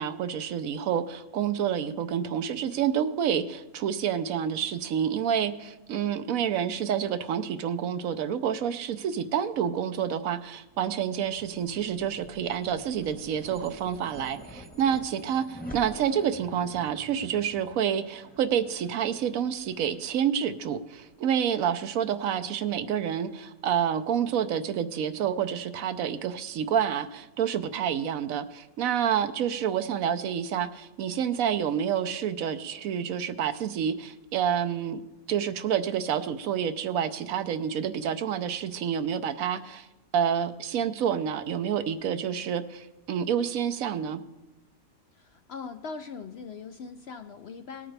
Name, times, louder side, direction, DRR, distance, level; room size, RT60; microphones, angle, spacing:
voice 1, 0.0-35.0 35.3-39.9 40.1-44.2, right 8 dB, 75° right, 11 dB, 1.1 m, -28 dB
sound 1, 10.6-21.2, equal, 5° left, 0.9 m, -48 dB
voice 2, 45.1-47.9, left 5 dB, 65° left, 8 dB, 0.7 m, -41 dB
19.0 x 8.8 x 3.3 m, 1.0 s
omnidirectional pair, 1.5 m